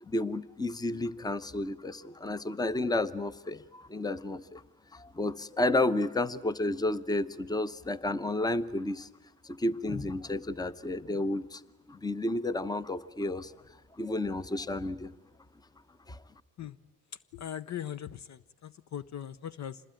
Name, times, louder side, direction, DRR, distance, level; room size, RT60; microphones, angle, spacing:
voice 1, 0.0-4.6 4.9-9.1 9.4-11.6 11.9-13.5 13.9-15.1 16.1-16.2, left 2 dB, 10° left, 15 dB, 0.9 m, -31 dB
voice 2, 17.3-19.8, left 10 dB, 50° left, 16 dB, 0.8 m, -40 dB
26.0 x 20.5 x 9.1 m, 1.1 s
supercardioid pair, 70°, 35 cm